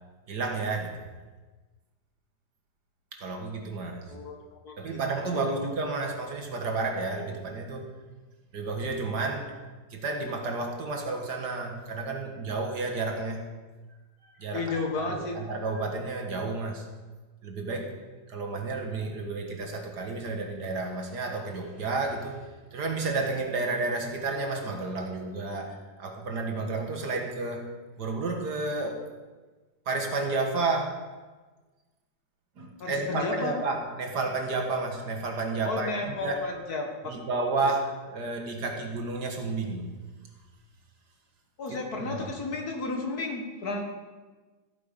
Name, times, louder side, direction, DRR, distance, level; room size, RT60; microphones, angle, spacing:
voice 1, 0.3-1.0 3.1-4.1 4.8-7.9 8.5-9.5 9.9-13.5 14.2-14.8 15.1-16.8 17.4-18.0 18.3-27.7 28.0-29.0 29.9-31.0 32.6-36.4 37.1-39.9 41.7-42.3, right 3 dB, 65° right, 3 dB, 2.1 m, -31 dB
voice 2, 5.3-5.7 14.5-15.4 32.8-33.5 35.6-37.2 41.6-43.8, left 3 dB, 60° left, 2 dB, 2.1 m, -32 dB
14.5 x 9.3 x 5.3 m, 1.3 s
omnidirectional pair, 1.9 m